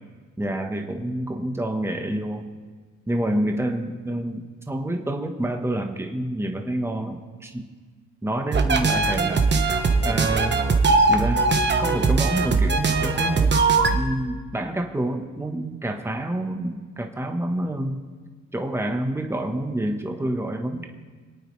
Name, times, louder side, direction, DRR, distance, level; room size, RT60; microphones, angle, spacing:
voice 1, 0.4-2.5 3.1-7.7 8.2-9.5 10.0-10.6 11.1-11.5 11.8-13.6 13.9-18.0 18.5-20.9, right 1 dB, 10° right, 4 dB, 1.3 m, -28 dB
sound 1, 8.5-14.0, right 4 dB, 35° right, 1.3 m, -20 dB
26.5 x 8.9 x 3.3 m, 1.4 s
cardioid pair, 90°, 30 cm